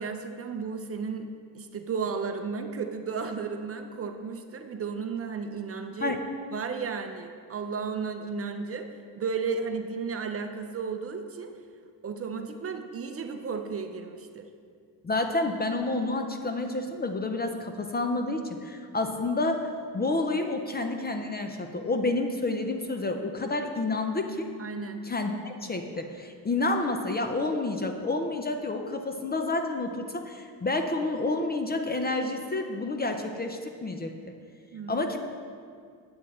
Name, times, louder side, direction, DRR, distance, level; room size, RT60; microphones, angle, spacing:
voice 1, 0.0-6.2 6.5-8.9 9.2-11.5 12.0-14.5 24.6-25.0 34.7-35.2, right 5 dB, 35° right, 6 dB, 0.6 m, -34 dB
voice 2, 15.0-24.5 25.0-34.1 34.9-35.2, left 2 dB, 20° left, 5 dB, 0.5 m, -29 dB
9.5 x 8.6 x 4.2 m, 2.2 s
cardioid pair, 135°, 44 cm